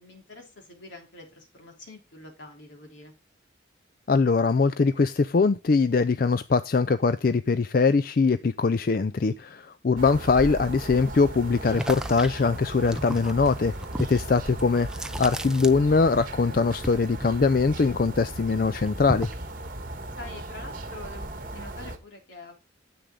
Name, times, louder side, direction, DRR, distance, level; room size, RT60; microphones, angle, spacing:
voice 1, 0.0-3.1 10.1-10.3 14.3-14.6 20.2-22.6, left 2 dB, 75° left, 3.3 m, -46 dB
voice 2, 4.1-13.7 14.1-14.9 15.2-19.3, left 4 dB, 50° left, 0.4 m, -22 dB
Outside the city in autumn, 10.0-22.0, right 1 dB, 45° right, 1.5 m, -37 dB
sound 1, 11.7-16.3 16.5-18.2 18.5-19.5, equal, 5° right, 0.5 m, -35 dB
10.0 x 7.7 x 3.7 m
head